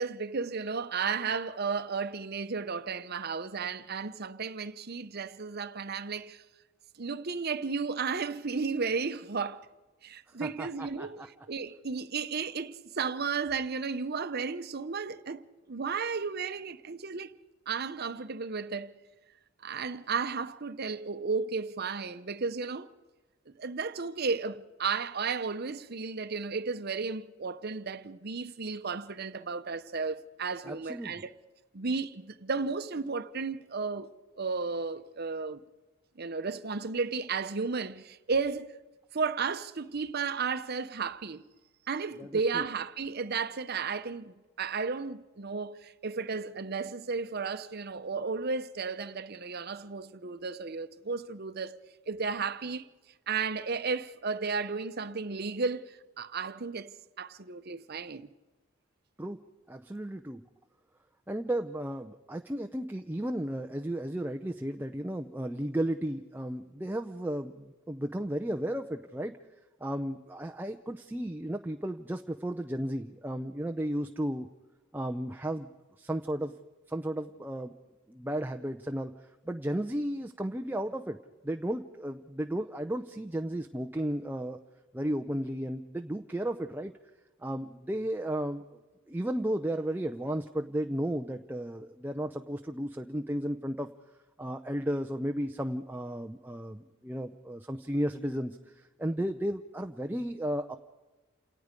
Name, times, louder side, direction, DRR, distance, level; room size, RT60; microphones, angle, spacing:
voice 1, 0.0-6.4 7.0-9.7 10.0-11.2 11.5-17.3 17.7-18.9 19.6-22.9 23.6-31.4 31.7-34.1 34.4-35.6 36.2-38.7 39.1-41.4 41.9-51.8 52.1-52.9 53.3-58.3, right 5 dB, 50° right, 0.8 m, -33 dB
voice 2, 10.4-11.3 30.6-31.2 42.2-42.6 59.2-60.5 61.3-69.4 69.8-74.5 74.9-75.7 76.0-76.5 76.9-77.7 78.1-81.2 81.4-84.6 84.9-86.9 87.4-88.6 89.1-93.9 94.4-100.8, right 1 dB, 10° right, 0.6 m, -34 dB
28.5 x 18.0 x 5.2 m
head